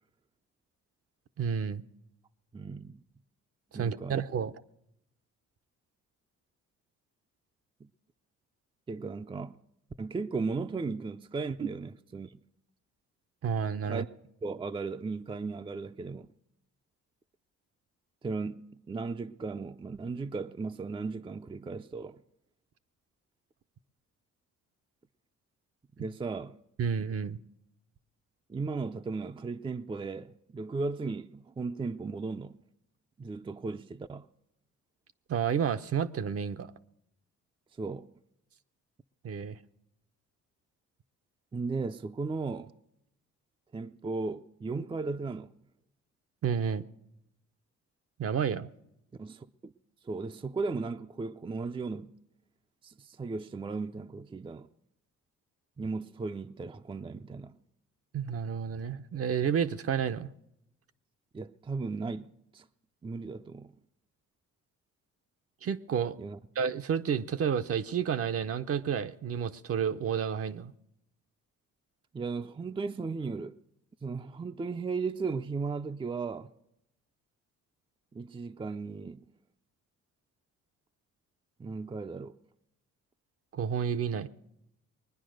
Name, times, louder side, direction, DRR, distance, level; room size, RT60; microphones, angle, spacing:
voice 1, 1.4-1.8 3.7-4.5 13.4-14.1 26.8-27.4 35.3-36.7 39.2-39.6 46.4-46.8 48.2-48.7 58.1-60.3 65.6-66.2 66.6-70.7 83.5-84.3, right 7 dB, 50° right, 0.7 m, -30 dB
voice 2, 2.5-3.0 3.7-4.2 7.8-7.9 8.9-9.6 10.0-12.4 13.9-14.1 14.4-16.3 18.2-22.2 26.0-26.6 28.5-32.6 33.2-34.3 37.8-38.1 41.5-42.7 43.7-45.5 49.2-49.7 50.0-52.1 52.8-54.7 55.8-57.6 61.3-62.7 63.0-63.7 66.2-66.4 72.1-73.6 74.0-76.5 78.1-79.2 81.6-82.4, right 4 dB, 15° right, 0.5 m, -36 dB
22.0 x 9.9 x 6.4 m
cardioid pair, 90°, 30 cm